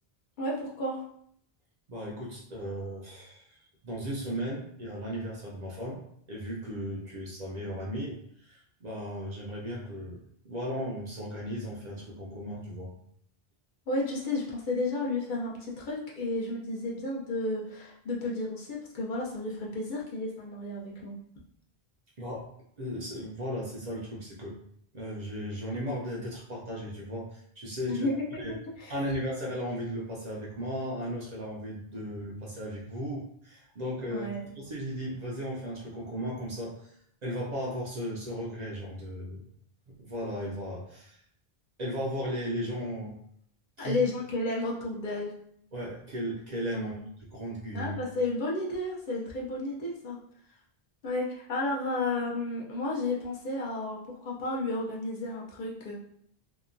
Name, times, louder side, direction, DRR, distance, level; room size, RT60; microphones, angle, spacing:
voice 1, 0.4-1.0 13.9-21.1 27.9-28.9 34.1-34.5 43.8-45.3 46.7-47.1 47.7-50.2 51.0-55.9, left 2 dB, 60° left, -3 dB, 0.7 m, -32 dB
voice 2, 1.9-3.6 3.8-6.0 6.3-12.9 22.2-22.5 22.8-24.5 24.9-28.1 28.4-28.5 28.9-34.3 34.6-36.9 37.2-39.4 39.9-41.2 41.8-43.2 43.8-44.0 45.7-47.9, equal, 50° right, -4 dB, 0.6 m, -36 dB
2.8 x 2.2 x 2.5 m, 0.67 s
omnidirectional pair, 1.0 m